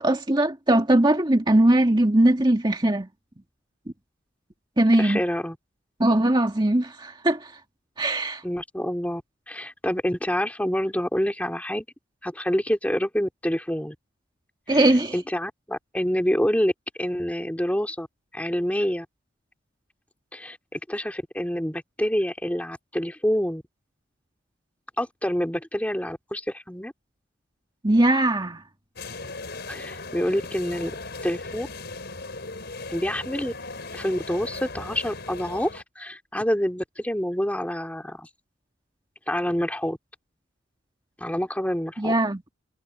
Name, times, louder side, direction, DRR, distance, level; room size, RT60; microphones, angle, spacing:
voice 1, 0.0-3.1 4.8-5.2 6.0-7.5 8.0-8.4 14.7-15.2 27.8-28.6 42.0-42.4, right 1 dB, 20° right, 2.0 m, -20 dB
voice 2, 5.0-5.6 8.4-9.2 9.5-11.8 12.2-13.9 14.7-16.7 17.0-18.1 18.3-19.1 20.3-23.6 25.0-26.9 29.7-30.9 31.2-31.7 32.9-33.5 33.9-38.3 39.3-40.0 41.2-42.1, equal, 5° left, 2.9 m, -27 dB
sound 1, 29.0-35.8, left 3 dB, 55° left, 5.3 m, -38 dB
head